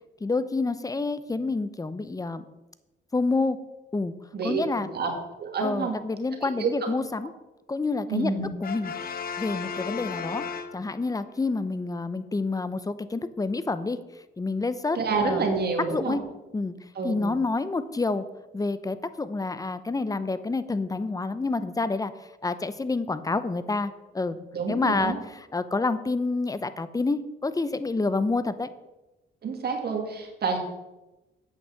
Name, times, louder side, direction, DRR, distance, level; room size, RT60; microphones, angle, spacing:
voice 1, 0.2-2.4 3.1-3.6 3.9-4.1 4.4-4.9 5.6-7.3 7.7-8.3 8.6-8.9 9.4-10.4 10.7-14.0 14.4-15.5 15.9-16.2 16.5-16.7 17.0-18.3 18.5-22.1 22.4-24.4 24.7-25.1 25.5-28.7, left 3 dB, 15° left, 13 dB, 0.8 m, -28 dB
voice 2, 5.4-6.0 6.4-6.7 8.1-8.5 14.9-16.2 16.9-17.3 24.5-25.2 29.4-30.6, right 4 dB, 55° right, 2 dB, 2.4 m, -28 dB
Brass instrument, 8.6-11.3, left 6 dB, 50° left, 0.8 m, -35 dB
8.6 x 6.3 x 7.5 m, 1.0 s
cardioid pair, 90°, 20 cm